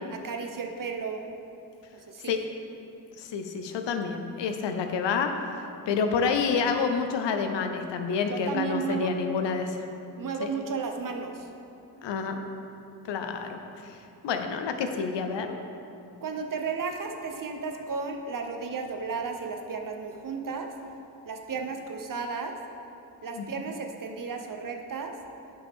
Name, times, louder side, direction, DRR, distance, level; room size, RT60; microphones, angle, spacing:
voice 1, 0.1-1.2 1.9-2.3 8.3-9.1 10.2-11.5 16.2-20.7 21.2-22.6 23.2-25.2, right 5 dB, 50° right, 4 dB, 0.9 m, -33 dB
voice 2, 3.2-5.3 5.9-9.8 10.4-10.5 12.0-12.4 13.0-14.0 14.2-15.6 23.3-23.4, left 5 dB, 80° left, 6 dB, 0.7 m, -28 dB
9.4 x 5.5 x 3.6 m, 2.7 s
cardioid pair, 55°, 42 cm